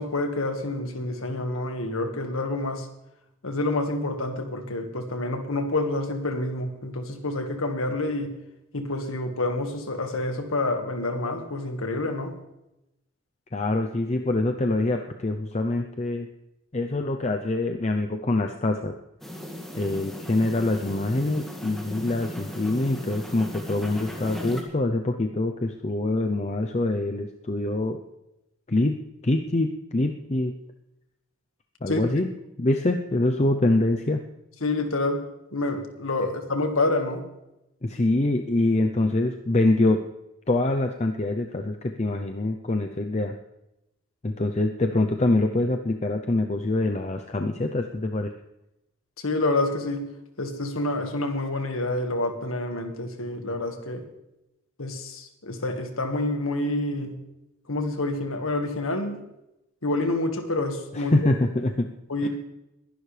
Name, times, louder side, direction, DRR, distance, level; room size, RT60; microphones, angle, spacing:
voice 1, 0.0-2.9 3.4-8.3 8.7-12.3 31.9-32.1 34.6-35.2 35.5-37.2 49.2-50.1 50.4-54.0 54.8-57.2 57.7-59.2 59.8-61.1 62.1-62.3, left 2 dB, 90° left, 5 dB, 1.7 m, -28 dB
voice 2, 13.5-16.3 16.7-19.0 19.7-28.0 28.7-29.0 29.2-30.5 31.8-32.3 32.6-34.2 37.8-40.0 40.5-43.4 44.2-48.3 60.9-61.9 62.2-62.3, left 2 dB, 35° left, 4 dB, 0.6 m, -25 dB
sound 1, 19.2-24.6, equal, ahead, 1.8 m, -37 dB
22.0 x 11.0 x 3.4 m, 0.91 s
head